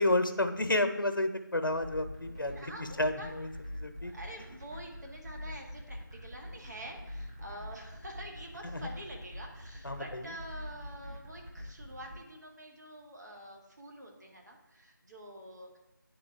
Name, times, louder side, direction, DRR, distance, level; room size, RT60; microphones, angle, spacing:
voice 1, 0.0-3.5 3.8-4.1 8.7-8.9 9.8-10.0, left 1 dB, 75° left, 8 dB, 0.8 m, -30 dB
sound 1, 1.7-12.2, left 1 dB, 15° right, 0.7 m, -44 dB
voice 2, 2.3-3.3 4.0-15.8, right 1 dB, 55° right, 0 dB, 1.5 m, -47 dB
9.5 x 3.8 x 3.5 m, 0.95 s
figure-of-eight pair, 165°, 11 cm